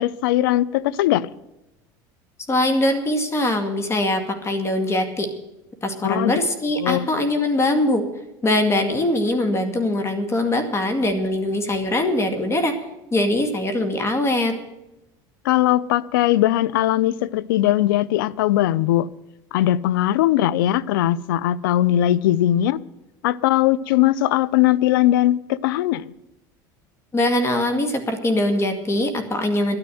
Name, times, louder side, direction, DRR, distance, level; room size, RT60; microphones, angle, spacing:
voice 1, 0.0-1.3 6.0-6.4 6.8-7.1 15.4-19.1 19.5-22.8 23.2-26.1, left 13 dB, 85° left, 0.5 m, -19 dB
voice 2, 2.5-5.3 5.8-8.1 8.4-12.7 13.1-14.6 27.1-29.8, left 1 dB, 25° left, 2.1 m, -22 dB
12.0 x 9.9 x 7.7 m
supercardioid pair, 100°, 11 cm